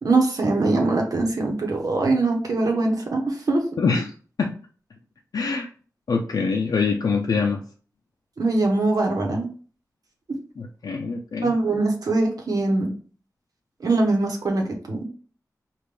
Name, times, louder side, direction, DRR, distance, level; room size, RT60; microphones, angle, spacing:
voice 1, 0.0-3.7 8.4-9.5 11.4-12.9 13.8-15.1, right 2 dB, 75° right, 2 dB, 1.0 m, -22 dB
voice 2, 3.8-4.1 4.4-4.5 5.3-5.7 6.1-7.6 10.6-11.5, left 4 dB, 75° left, 0 dB, 0.5 m, -24 dB
5.2 x 2.5 x 3.3 m, 0.40 s
wide cardioid pair, 110°, 6 cm